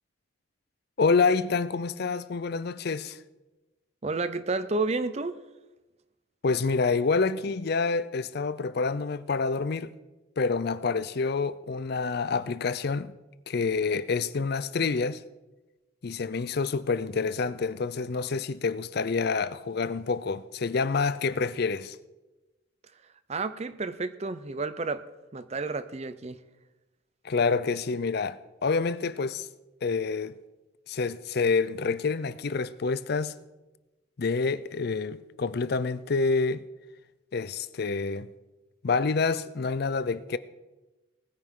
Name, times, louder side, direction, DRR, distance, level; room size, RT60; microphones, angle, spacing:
voice 1, 1.0-3.2 6.4-9.9 10.4-13.1 13.5-15.2 16.0-22.0 27.2-29.5 29.8-30.3 30.9-33.3 34.2-36.6 37.3-38.3 38.8-40.4, left 4 dB, 50° left, 0.5 m, -27 dB
voice 2, 4.0-5.4 23.3-25.0 25.3-26.4, right 3 dB, 30° right, 0.6 m, -31 dB
19.5 x 9.6 x 3.8 m
head